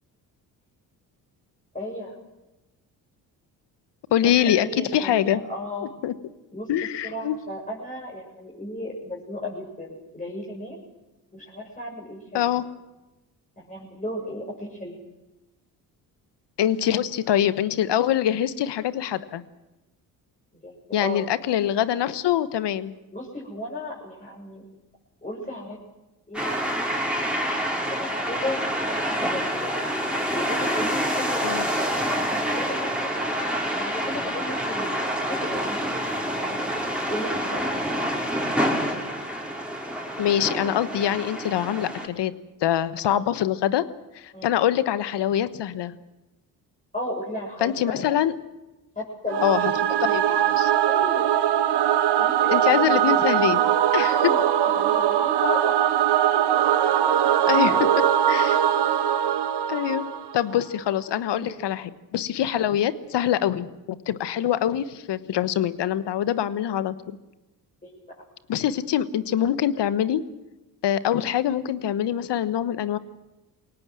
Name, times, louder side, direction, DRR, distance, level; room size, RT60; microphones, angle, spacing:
voice 1, 1.7-2.2 4.2-5.9 6.5-6.7 7.0-10.8 11.3-12.5 13.6-15.0 20.6-20.7 21.0-21.2 23.1-24.6 25.2-25.8 26.3-26.5 27.8-28.6 28.8-29.8 30.3-31.7 32.3-33.3 33.7-37.9 43.1-43.2 44.3-44.5 46.9-48.1 49.0-49.5 50.0-50.4 50.8-51.3 52.2-53.3 54.0-55.8 56.3-56.4 57.0-57.4 57.7-58.0 61.4-61.6 62.5-62.7 67.8-68.2, left 1 dB, 15° left, -4 dB, 7.3 m, -35 dB
voice 2, 4.1-5.4 5.8-6.1 6.7-7.4 12.3-12.6 16.6-19.4 20.9-22.9 31.4-31.7 40.2-42.3 42.6-43.8 44.1-45.9 47.6-48.3 49.4-49.7 50.1-50.2 50.6-50.7 52.5-53.6 53.9-54.2 57.4-57.8 58.3-58.6 59.7-63.7 64.1-67.2 68.5-70.2 70.8-73.0, left 11 dB, 60° left, 14 dB, 1.3 m, -24 dB
sound 1, 26.3-42.1, equal, ahead, 5.8 m, -27 dB
Singing / Musical instrument, 49.3-60.6, right 10 dB, 60° right, 1.5 m, -21 dB
22.5 x 18.0 x 7.7 m, 1.0 s
hypercardioid pair, 55°, 46 cm